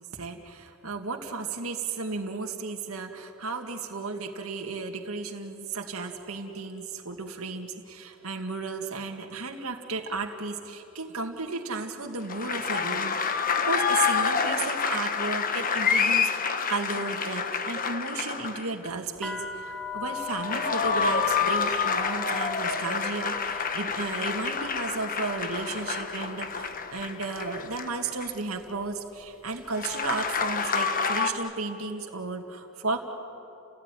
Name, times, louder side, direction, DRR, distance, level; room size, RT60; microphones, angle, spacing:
voice 1, 0.0-33.0, right 3 dB, 80° right, 3 dB, 2.0 m, -34 dB
sound 1, 12.3-18.9 20.2-28.5 29.7-31.3, left 5 dB, 40° left, 1.2 m, -28 dB
sound 2, 19.2-27.1 27.4-28.0 28.6-28.9 29.2-30.7, left 5 dB, ahead, 0.7 m, -41 dB
30.0 x 18.0 x 9.9 m, 2.9 s
head